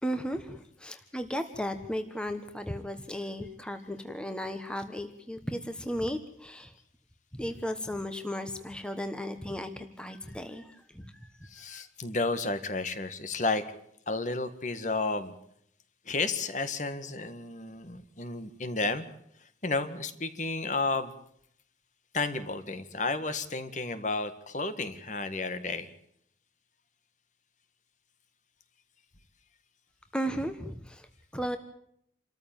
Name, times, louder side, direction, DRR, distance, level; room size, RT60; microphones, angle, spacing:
voice 1, 0.0-6.7 7.3-11.8 30.1-31.6, equal, 5° left, 7 dB, 1.3 m, -35 dB
voice 2, 11.5-13.6 14.1-15.3 16.1-19.1 19.4-21.1 22.1-25.9, left 3 dB, 40° left, 11 dB, 1.8 m, -32 dB
28.0 x 14.0 x 9.0 m, 0.71 s
head